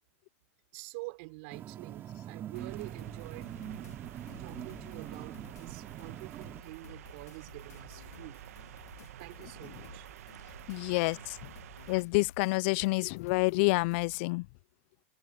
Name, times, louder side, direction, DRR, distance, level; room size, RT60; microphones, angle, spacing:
voice 1, 0.7-3.5 4.4-8.5 9.2-10.1, right 28 dB, 55° right, 5.7 m, -47 dB
sound 1, 1.5-6.6, right 11 dB, 25° right, 2.5 m, -43 dB
sound 2, 2.5-14.3, left 9 dB, 90° left, 2.5 m, -55 dB
sound 3, 2.5-12.0, right 13 dB, 70° right, 1.2 m, -50 dB
voice 2, 10.7-11.2 11.9-14.4, left 27 dB, 50° left, 0.4 m, -28 dB
hypercardioid pair, 130°, 8 cm